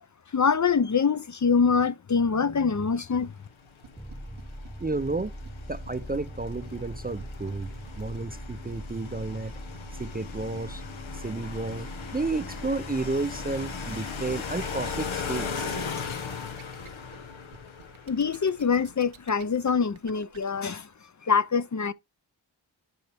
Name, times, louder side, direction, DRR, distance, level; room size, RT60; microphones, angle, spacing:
voice 1, 0.3-3.3 18.1-20.9 21.2-21.9, left 5 dB, 40° left, 0.6 m, -24 dB
sound 1, 3.1-19.3, left 5 dB, 85° left, 1.2 m, -39 dB
sound 2, 3.8-20.4, right 7 dB, 85° right, 1.2 m, -52 dB
sound 3, 4.0-17.4, equal, ahead, 1.1 m, -42 dB
voice 2, 4.8-5.3 5.7-9.5 10.0-10.8 11.1-15.7, right 3 dB, 20° right, 0.5 m, -32 dB
10.5 x 4.4 x 3.4 m
cardioid pair, 45°, 46 cm